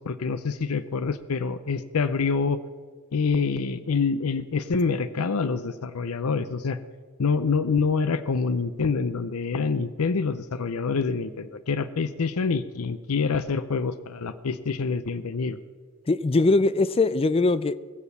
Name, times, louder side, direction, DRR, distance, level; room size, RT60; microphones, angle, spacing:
voice 1, 0.0-2.6 3.1-6.8 7.2-15.6, left 4 dB, 70° left, 12 dB, 0.6 m, -26 dB
voice 2, 16.1-17.9, left 3 dB, 25° left, 16 dB, 0.4 m, -21 dB
20.5 x 7.2 x 7.0 m, 1.5 s
head